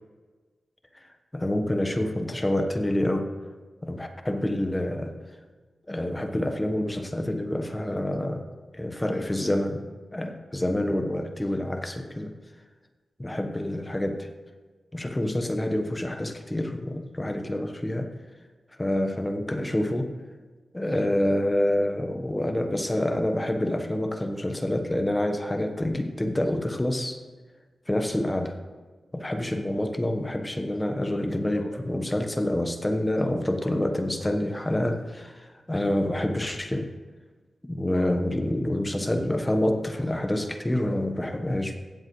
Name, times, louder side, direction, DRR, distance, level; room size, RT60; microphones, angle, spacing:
voice 1, 1.3-3.3 3.8-5.1 5.9-8.4 8.7-9.9 10.1-12.3 13.2-14.3 14.9-18.1 18.8-20.1 20.7-27.2 27.9-28.5 29.1-36.9 37.7-41.8, left 1 dB, 15° left, 5 dB, 1.1 m, -27 dB
16.5 x 7.6 x 3.2 m, 1.4 s
wide cardioid pair, 80°, 0 cm